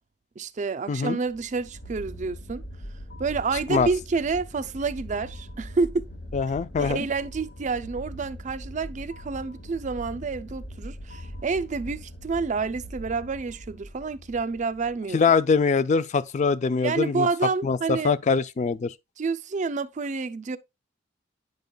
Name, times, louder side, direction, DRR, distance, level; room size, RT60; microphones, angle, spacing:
voice 1, 0.4-2.6 3.2-6.1 6.8-15.2 16.8-18.2 19.2-20.6, right 4 dB, 40° right, 0.4 m, -29 dB
sound 1, 1.2-15.4, equal, 65° left, 0.9 m, -41 dB
voice 2, 6.3-7.1 15.1-17.3 17.6-18.9, left 5 dB, 40° left, 0.4 m, -23 dB
9.4 x 5.2 x 2.2 m
head